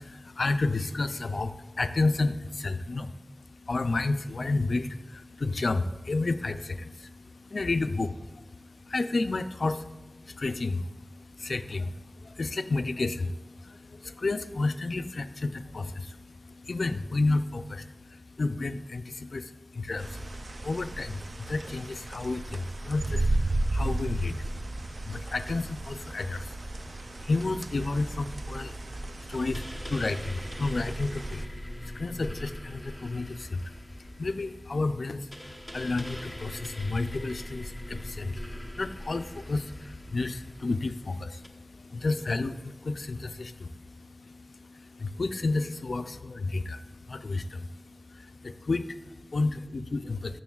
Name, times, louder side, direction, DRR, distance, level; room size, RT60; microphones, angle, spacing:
voice 1, 0.0-50.4, left 3 dB, 90° left, 10 dB, 0.3 m, -32 dB
sound 1, 20.0-31.4, right 2 dB, 70° right, 0.4 m, -34 dB
sound 2, 29.3-41.5, equal, 15° right, 1.0 m, -42 dB
13.5 x 6.2 x 2.3 m, 1.1 s
wide cardioid pair, 45°, 0 cm